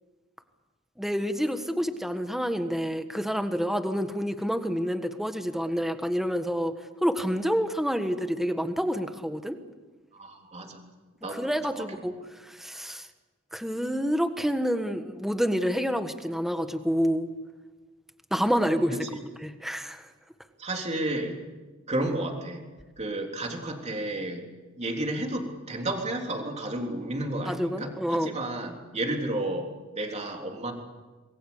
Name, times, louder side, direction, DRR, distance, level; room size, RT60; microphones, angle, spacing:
voice 1, 1.0-6.7 7.0-9.6 11.3-12.1 12.5-13.1 13.5-17.3 18.3-19.0 19.4-20.1 27.5-28.3, equal, ahead, 7 dB, 1.5 m, -28 dB
voice 2, 10.2-10.9 11.2-11.5 11.7-11.9 19.1-19.2 20.6-21.4 21.9-22.6 23.0-24.4 24.8-29.7 29.9-30.7, right 1 dB, 35° right, 2 dB, 3.6 m, -32 dB
26.5 x 21.5 x 7.1 m, 1.3 s
head